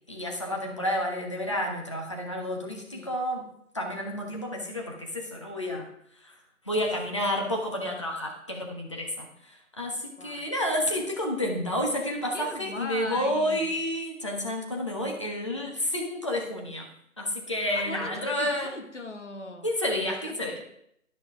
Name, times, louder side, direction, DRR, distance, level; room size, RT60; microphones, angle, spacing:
voice 1, 0.1-3.5 3.7-5.9 6.2-6.3 6.6-16.9 17.2-18.7 19.6-20.6, left 1 dB, 20° left, 0 dB, 1.1 m, -30 dB
voice 2, 2.8-3.2 10.2-10.4 12.3-13.8 17.7-19.7 20.2-20.6, left 2 dB, 55° left, 5 dB, 1.6 m, -39 dB
12.0 x 6.2 x 4.9 m, 0.73 s
figure-of-eight pair, 165°, 43 cm